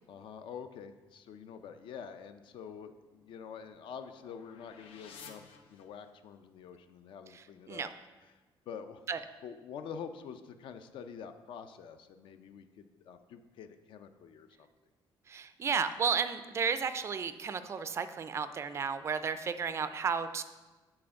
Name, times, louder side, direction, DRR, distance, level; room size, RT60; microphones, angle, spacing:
voice 1, 0.1-7.9 8.2-8.4 8.7-9.0 9.4-14.7, left 7 dB, 60° left, 9 dB, 0.5 m, -47 dB
sound 1, 2.9-6.4, left 6 dB, 85° left, 0.8 m, -55 dB
voice 2, 15.3-20.4, right 6 dB, 30° right, 11 dB, 0.3 m, -33 dB
7.6 x 4.3 x 5.7 m, 1.2 s
cardioid pair, 165°, 10 cm